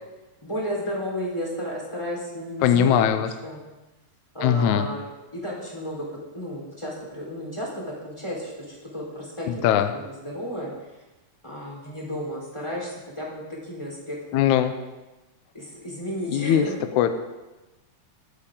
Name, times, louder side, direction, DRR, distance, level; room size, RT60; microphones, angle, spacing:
voice 1, 0.4-3.6 4.3-5.1 5.3-6.1 6.3-10.9 11.4-14.6 15.5-17.0, equal, 10° left, -4 dB, 3.6 m, -33 dB
voice 2, 2.6-3.3 4.4-4.9 9.5-9.9 14.3-14.7 16.3-16.7 17.0-17.2, left 9 dB, 80° left, 9 dB, 2.0 m, -20 dB
24.0 x 8.5 x 3.8 m, 1.1 s
omnidirectional pair, 3.6 m